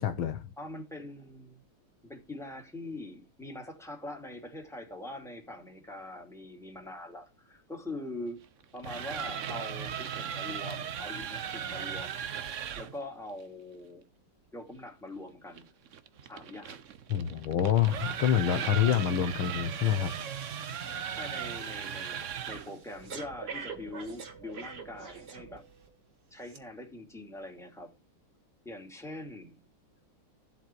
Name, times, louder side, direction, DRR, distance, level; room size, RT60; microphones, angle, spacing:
voice 1, 0.0-0.5 17.1-20.1, left 10 dB, 70° left, 1.7 m, -27 dB
voice 2, 0.6-1.6 2.0-8.4 8.7-12.2 12.8-14.0 14.5-15.7 16.2-16.8 21.1-25.6 26.3-27.9 28.6-29.6, left 2 dB, ahead, 2.5 m, -43 dB
sound 1, 8.6-13.0 15.6-22.8, right 8 dB, 70° right, 0.7 m, -37 dB
Breathing, 18.9-19.1 19.4-25.9 26.4-26.6, right 5 dB, 50° right, 2.2 m, -46 dB
13.5 x 8.0 x 4.5 m
omnidirectional pair, 2.4 m